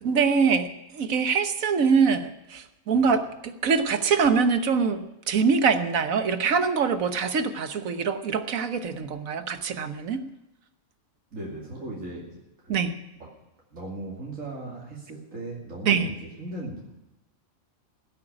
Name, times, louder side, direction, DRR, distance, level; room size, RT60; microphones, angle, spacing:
voice 1, 0.0-10.2 12.7-12.9 15.8-16.1, right 5 dB, 90° right, 10 dB, 1.5 m, -24 dB
voice 2, 11.3-12.3 12.6-12.8 13.2-13.3 13.7-16.8, right 2 dB, 70° right, -3 dB, 3.0 m, -37 dB
16.0 x 8.5 x 9.8 m, 0.93 s
omnidirectional pair, 1.4 m